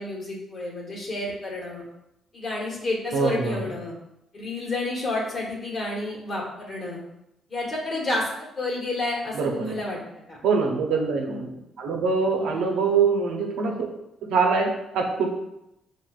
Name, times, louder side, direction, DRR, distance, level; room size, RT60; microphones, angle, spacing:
voice 1, 0.0-1.8 2.3-3.9 4.3-7.0 7.5-10.0 10.3-10.4 12.4-12.8, left 2 dB, 40° left, -3 dB, 1.4 m, -30 dB
voice 2, 3.1-3.7 9.4-9.8 10.4-13.9 14.3-15.3, right 4 dB, 85° right, 1 dB, 0.7 m, -24 dB
6.1 x 2.5 x 2.4 m, 0.85 s
cardioid pair, 90°, 0 cm